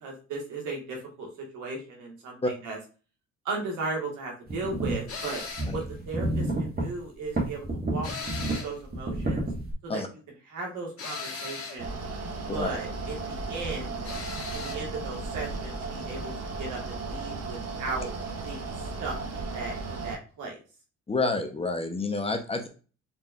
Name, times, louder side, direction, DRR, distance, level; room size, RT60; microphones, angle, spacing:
voice 1, 0.0-2.8 3.4-5.5 5.7-9.5 9.8-10.0 10.4-12.0 12.5-14.0 14.5-16.3 16.6-18.1 18.4-18.7 19.0-20.6, right 3 dB, 90° right, 0 dB, 1.5 m, -36 dB
sound 1, 4.5-5.0 5.6-6.9 7.3-8.6 8.9-9.7, right 1 dB, 30° right, 1.4 m, -29 dB
sound 2, 5.1-5.8 8.0-8.8 11.0-11.8 14.0-14.8, left 4 dB, 50° left, 1.5 m, -37 dB
Mechanical fan, 11.8-20.2, right 3 dB, 55° right, 0.8 m, -35 dB
voice 2, 21.1-22.7, left 3 dB, 20° left, 5 dB, 0.7 m, -28 dB
4.2 x 3.3 x 2.4 m, 0.36 s
cardioid pair, 90°, 30 cm